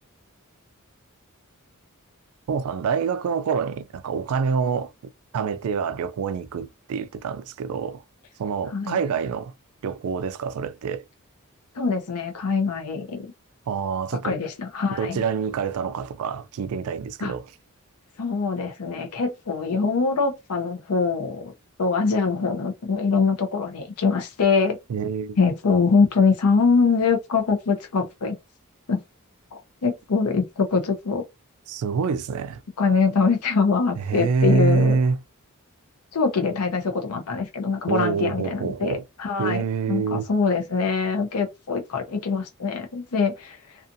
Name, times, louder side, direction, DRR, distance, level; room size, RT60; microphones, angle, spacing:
voice 1, 2.5-4.9 5.3-8.0 8.4-9.5 9.8-11.0 13.7-14.4 14.9-17.4 24.9-25.4 31.7-32.6 34.0-35.2 37.9-39.0 39.4-40.3, right 5 dB, 70° right, 0.3 m, -26 dB
voice 2, 11.8-13.2 14.2-15.2 17.2-17.3 18.2-21.5 21.8-24.8 25.4-28.4 28.9-29.0 29.5-31.2 32.8-35.0 36.1-43.6, left 4 dB, 85° left, 0.6 m, -23 dB
2.6 x 2.4 x 2.5 m
head